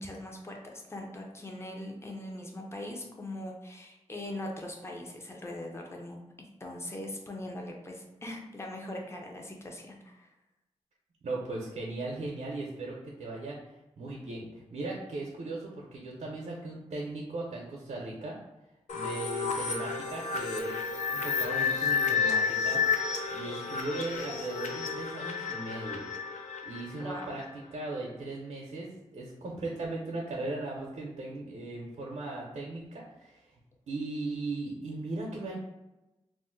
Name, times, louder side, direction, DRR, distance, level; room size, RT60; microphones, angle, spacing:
voice 1, 0.0-6.2 6.6-10.3 27.0-27.3, left 1 dB, 20° left, 0 dB, 0.6 m, -41 dB
voice 2, 11.2-13.6 14.0-18.4 18.9-22.8 23.3-26.1 26.6-28.9 29.1-33.5 33.9-35.6, right 2 dB, 75° right, -3 dB, 0.6 m, -38 dB
sound 1, 18.9-27.5, left 5 dB, 80° left, 0.4 m, -31 dB
2.5 x 2.1 x 3.7 m, 0.99 s
cardioid pair, 65°, 12 cm